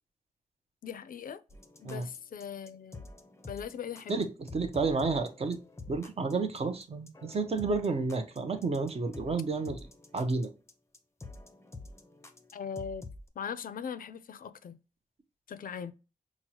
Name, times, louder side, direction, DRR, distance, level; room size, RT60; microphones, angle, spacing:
voice 1, 0.8-1.4 1.8-3.1 3.5-4.3 12.5-13.0 13.4-14.8 15.5-15.9, left 7 dB, 80° left, 0.4 m, -40 dB
sound 1, 1.5-13.3, left 3 dB, 20° left, 0.5 m, -48 dB
voice 2, 4.1-5.6 5.9-9.9 10.1-10.5, right 4 dB, 45° right, 0.6 m, -31 dB
5.9 x 2.0 x 2.8 m
wide cardioid pair, 155°, 14 cm